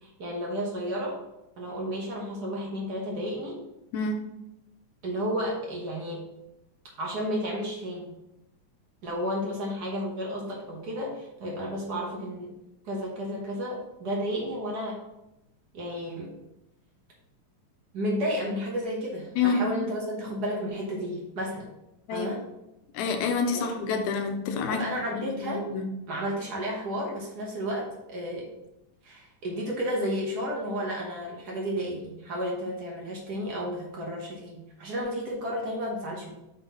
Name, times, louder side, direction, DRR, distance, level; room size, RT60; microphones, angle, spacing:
voice 1, 0.0-1.2 1.6-3.6 5.0-6.2 7.0-8.1 9.0-12.5 12.8-15.0 15.7-16.4 17.9-21.7 22.1-22.4 24.7-25.6 26.1-28.5 29.0-36.3, equal, 85° right, -2 dB, 0.8 m, -32 dB
voice 2, 3.9-4.3 19.4-19.6 22.1-22.3 22.9-24.8 25.2-25.9, left 5 dB, 90° left, 4 dB, 2.1 m, -28 dB
6.1 x 4.0 x 4.0 m, 0.89 s
omnidirectional pair, 3.3 m